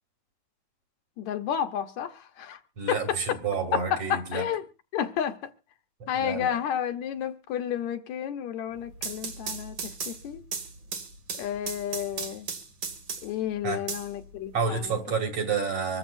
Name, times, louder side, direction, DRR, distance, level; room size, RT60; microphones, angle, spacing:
voice 1, 1.2-2.6 2.9-3.2 3.7-4.7 4.9-5.4 6.1-9.8 10.1-10.4 11.4-12.5 13.2-15.0, left 9 dB, 75° left, 2.2 m, -31 dB
voice 2, 2.8-4.4 6.2-6.5 13.6-13.8 14.5-16.0, right 5 dB, 55° right, 3.4 m, -29 dB
sound 1, 8.8-13.4 13.9-14.9, right 5 dB, 70° right, 3.7 m, -36 dB
25.5 x 13.5 x 2.6 m
omnidirectional pair, 3.4 m